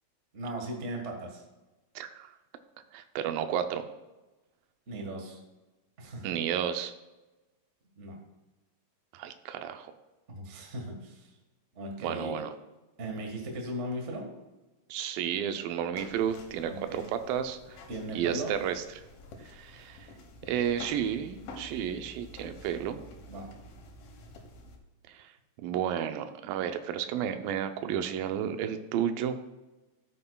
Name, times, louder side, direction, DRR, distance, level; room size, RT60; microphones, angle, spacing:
voice 1, 0.3-1.4 4.9-5.4 6.0-6.3 8.0-8.2 10.3-11.3 11.7-12.4 13.0-14.3 16.7-17.1 17.9-18.6 23.3-23.5, right 1 dB, 50° right, 1 dB, 0.8 m, -37 dB
voice 2, 2.0-2.3 2.9-3.9 6.2-6.9 9.1-9.9 12.0-12.5 14.9-17.8 18.1-18.8 19.4-20.1 20.4-23.1 25.1-25.3 25.6-29.4, right 9 dB, 85° right, 8 dB, 2.4 m, -32 dB
sound 1, 16.0-24.8, left 2 dB, 85° left, 3.0 m, -49 dB
13.5 x 7.7 x 2.3 m, 1.1 s
omnidirectional pair, 4.0 m